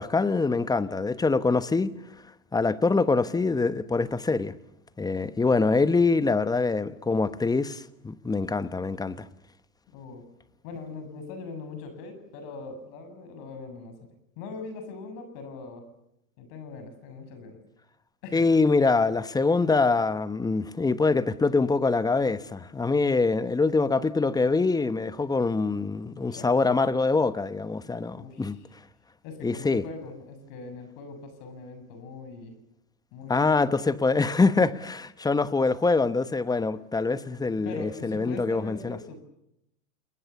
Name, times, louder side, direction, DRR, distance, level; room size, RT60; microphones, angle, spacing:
voice 1, 0.0-1.9 2.5-4.5 5.0-9.3 18.3-28.6 29.4-29.8 33.3-39.0, left 3 dB, 10° left, 1.0 m, -24 dB
voice 2, 9.9-10.2 10.6-14.0 14.4-15.8 16.4-17.6 18.2-18.5 26.3-26.5 28.2-28.6 29.2-32.5 33.1-33.5 37.6-39.2, left 4 dB, 55° left, 7.3 m, -41 dB
29.0 x 20.5 x 7.1 m
hypercardioid pair, 110°, 42 cm